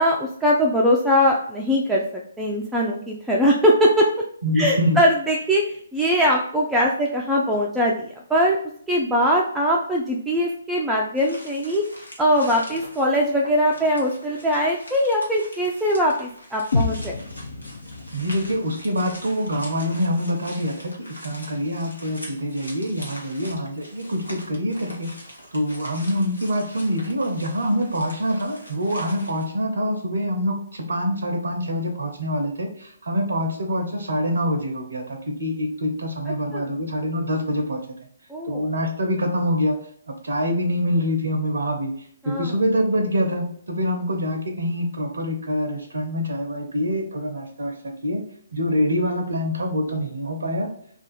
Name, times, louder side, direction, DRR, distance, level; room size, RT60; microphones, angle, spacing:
voice 1, 0.0-4.1 4.6-8.6 8.9-11.8 12.2-17.2 36.5-36.7 38.3-38.6 42.2-42.5, equal, 5° right, -3 dB, 0.3 m, -21 dB
voice 2, 4.4-5.0 18.1-25.1 25.5-37.8 38.5-39.8 40.1-41.9 42.2-47.7 48.0-48.2 48.5-50.7, equal, 65° right, 2 dB, 0.5 m, -25 dB
sound 1, 11.2-29.4, equal, 85° left, 1.0 m, -43 dB
sound 2, 16.7-20.7, left 3 dB, 65° left, 0.5 m, -30 dB
2.5 x 2.3 x 3.9 m, 0.63 s
figure-of-eight pair, 130°, 0 cm